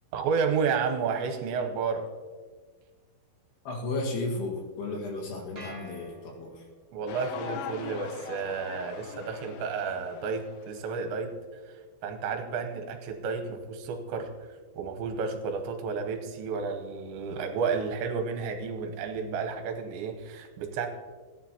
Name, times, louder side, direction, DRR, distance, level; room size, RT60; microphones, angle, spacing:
voice 1, 0.1-2.0 6.9-11.3 11.7-11.8 12.0-14.3 14.8-20.9, right 5 dB, 85° right, 4 dB, 3.2 m, -31 dB
voice 2, 3.7-6.6, left 2 dB, 65° left, 0 dB, 3.6 m, -34 dB
sound 1, 5.6-6.9, right 1 dB, 25° right, 1.4 m, -47 dB
sound 2, 7.1-11.0, left 7 dB, 85° left, 2.1 m, -41 dB
16.5 x 9.7 x 2.9 m, 1.4 s
omnidirectional pair, 5.2 m